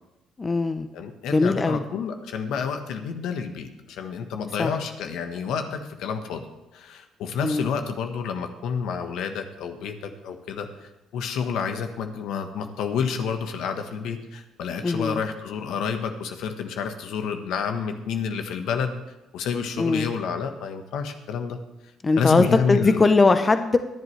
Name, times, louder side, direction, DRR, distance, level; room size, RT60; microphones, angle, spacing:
voice 1, 0.4-0.9 1.3-1.8 4.6-4.7 7.4-7.7 14.8-15.2 19.8-20.1 22.0-23.8, left 3 dB, 30° left, 9 dB, 0.8 m, -20 dB
voice 2, 0.9-6.5 6.7-18.9 19.3-21.6 22.2-23.0, left 6 dB, 80° left, 6 dB, 1.3 m, -29 dB
23.0 x 7.9 x 3.3 m, 1.0 s
cardioid pair, 80°, 0 cm